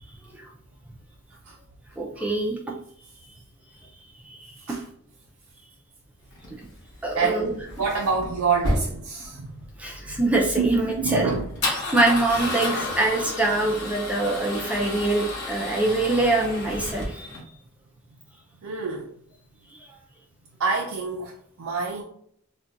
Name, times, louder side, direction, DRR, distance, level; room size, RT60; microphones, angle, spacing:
voice 1, 2.0-2.6 4.3-4.5 7.0-7.7 9.8-11.3 11.7-17.4, right 2 dB, 5° right, -1 dB, 0.4 m, -24 dB
Male speech man speaking / Car / Engine starting, 6.3-17.4, left 1 dB, 55° left, 0.8 m, -32 dB
voice 2, 7.1-9.5 10.6-11.5 18.6-19.1 20.6-21.3 21.6-22.0, right 5 dB, 85° right, -1 dB, 0.5 m, -27 dB
2.4 x 2.2 x 3.8 m, 0.62 s
head